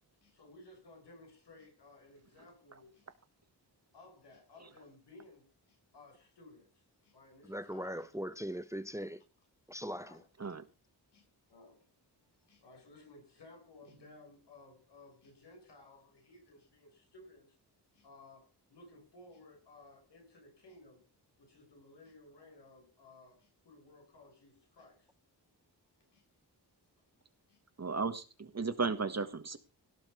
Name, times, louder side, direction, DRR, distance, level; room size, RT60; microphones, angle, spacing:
voice 1, 0.2-3.0 3.9-6.7 7.0-8.2 9.8-10.2 11.1-11.2 11.5-11.8 12.4-17.5 17.9-21.0 21.4-25.1 26.1-26.2 27.5-27.6, left 2 dB, 90° left, 7.2 m, -58 dB
voice 2, 7.4-9.2 9.7-10.2, equal, 5° right, 0.8 m, -40 dB
voice 3, 27.8-29.6, right 4 dB, 40° right, 1.6 m, -35 dB
17.5 x 5.8 x 7.0 m
wide cardioid pair, 115°, 40 cm